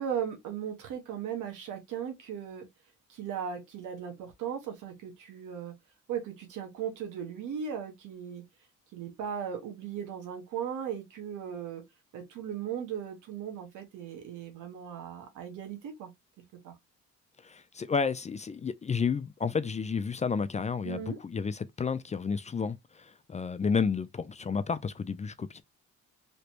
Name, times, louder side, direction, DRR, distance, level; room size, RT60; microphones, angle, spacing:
voice 1, 0.0-2.7 3.1-5.7 6.1-8.4 8.9-11.8 12.1-16.1 16.6-16.7 20.8-21.2, right 8 dB, 90° right, 1.3 m, -37 dB
voice 2, 17.4-25.6, left 5 dB, 25° left, 0.4 m, -31 dB
3.2 x 3.0 x 2.8 m
cardioid pair, 90°, 30 cm